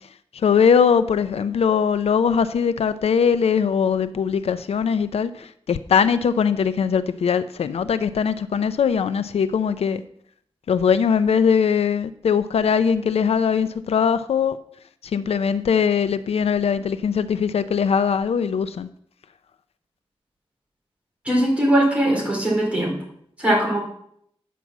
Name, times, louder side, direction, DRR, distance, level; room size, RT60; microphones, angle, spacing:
voice 1, 0.4-10.0 10.7-14.6 15.1-18.9, left 6 dB, 80° left, 0.5 m, -21 dB
voice 2, 21.2-23.0 23.4-23.8, right 1 dB, 10° right, 4.1 m, -20 dB
9.2 x 6.0 x 7.2 m
wide cardioid pair, 135°, 10 cm